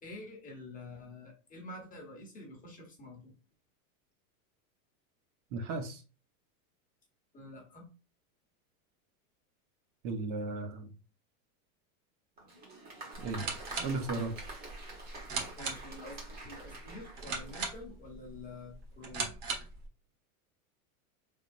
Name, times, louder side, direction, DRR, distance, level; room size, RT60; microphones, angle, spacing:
voice 1, 0.0-3.3 7.3-7.9 15.6-19.2, left 2 dB, 20° left, 1.1 m, -48 dB
voice 2, 5.5-6.0 10.0-10.8 13.2-13.4 13.8-14.4, right 3 dB, 55° right, 1.0 m, -35 dB
Applause, 12.4-17.9, right 2 dB, 20° right, 1.2 m, -47 dB
sound 1, 13.1-19.9, right 4 dB, 40° right, 1.3 m, -40 dB
4.3 x 3.6 x 2.6 m
supercardioid pair, 150°, 44 cm